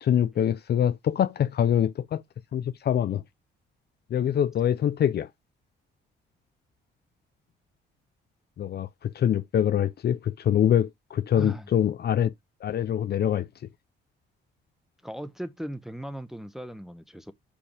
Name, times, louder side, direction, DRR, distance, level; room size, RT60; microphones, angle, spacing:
voice 1, 0.0-2.2 2.5-3.2 4.1-5.3 8.6-12.3 12.6-13.5, left 9 dB, 55° left, 0.6 m, -24 dB
voice 2, 11.3-11.7 15.0-17.3, right 1 dB, ahead, 1.0 m, -37 dB
8.4 x 5.2 x 3.4 m
cardioid pair, 90°, 20 cm